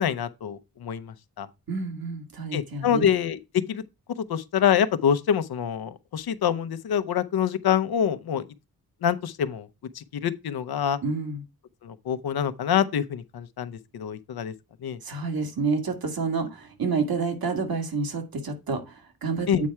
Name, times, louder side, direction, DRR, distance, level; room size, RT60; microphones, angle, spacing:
voice 1, 0.0-1.5 2.5-3.4 3.7-3.8 4.3-8.4 9.0-9.7 9.9-11.0 11.8-14.5 14.8-15.0 19.5-19.6, left 8 dB, 90° left, 0.7 m, -26 dB
voice 2, 1.7-3.1 11.0-11.4 15.0-19.7, right 4 dB, 75° right, 1.8 m, -29 dB
8.4 x 4.4 x 4.7 m
wide cardioid pair, 125°, 36 cm